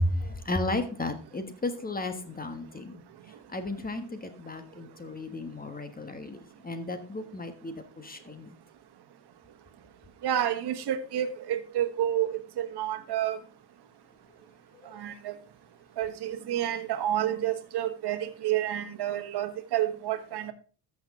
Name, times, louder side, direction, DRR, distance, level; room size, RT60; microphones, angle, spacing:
voice 1, 0.0-3.0 3.5-6.4 6.6-8.5, left 2 dB, 20° left, 9 dB, 1.4 m, -33 dB
voice 2, 10.2-13.4 14.9-15.4 16.0-20.5, right 11 dB, 60° right, 8 dB, 1.4 m, -29 dB
13.5 x 6.4 x 3.7 m, 0.38 s
cardioid pair, 100°, 45 cm